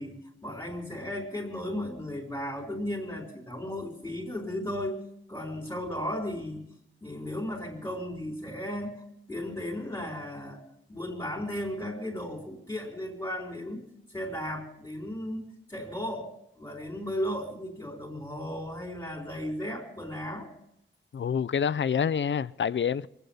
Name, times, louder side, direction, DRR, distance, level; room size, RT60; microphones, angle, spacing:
voice 1, 0.0-5.0 5.3-6.7 7.0-10.6 10.9-13.8 14.1-16.3 16.5-20.5, left 1 dB, 15° left, 3.7 m, -35 dB
voice 2, 21.1-23.1, left 7 dB, 65° left, 0.5 m, -27 dB
23.0 x 8.2 x 7.0 m
wide cardioid pair, 75°, 21 cm